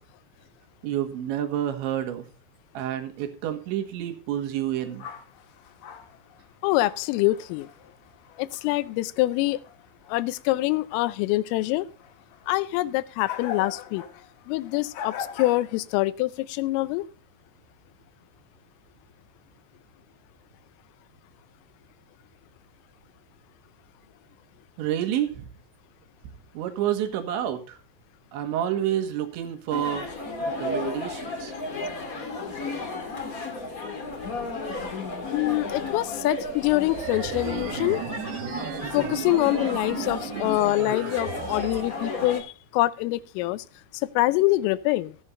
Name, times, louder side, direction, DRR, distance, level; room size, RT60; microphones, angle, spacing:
voice 1, 0.8-2.2 2.8-5.1 24.8-25.4 26.6-27.8 28.3-30.1 30.4-31.5, right 11 dB, 70° right, 7 dB, 3.6 m, -29 dB
sound 1, 4.8-8.8 9.2-10.4 10.7-11.2 11.5-11.6 11.9-16.0, left 8 dB, 65° left, 3.7 m, -41 dB
voice 2, 6.6-7.7 8.4-9.6 10.1-11.9 12.5-14.0 14.5-17.1 35.3-38.0 38.9-42.5 42.7-43.6 43.9-45.2, left 18 dB, 85° left, 16 dB, 3.3 m, -25 dB
sound 2, 29.7-42.4, left 3 dB, 45° left, 1.0 m, -33 dB
sound 3, 36.9-41.9, right 13 dB, 85° right, 2.2 m, -35 dB
17.0 x 11.0 x 2.6 m, 0.35 s
omnidirectional pair, 6.0 m